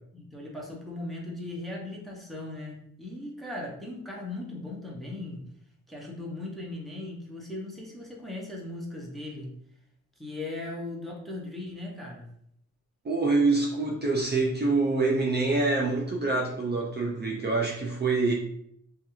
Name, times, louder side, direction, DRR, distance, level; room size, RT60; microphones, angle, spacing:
voice 1, 0.1-5.4 5.9-9.5 10.2-12.3, left 2 dB, ahead, -3 dB, 0.7 m, -38 dB
voice 2, 13.0-18.3, right 3 dB, 35° right, -2 dB, 0.4 m, -25 dB
2.5 x 2.3 x 3.0 m, 0.71 s
wide cardioid pair, 110°, 29 cm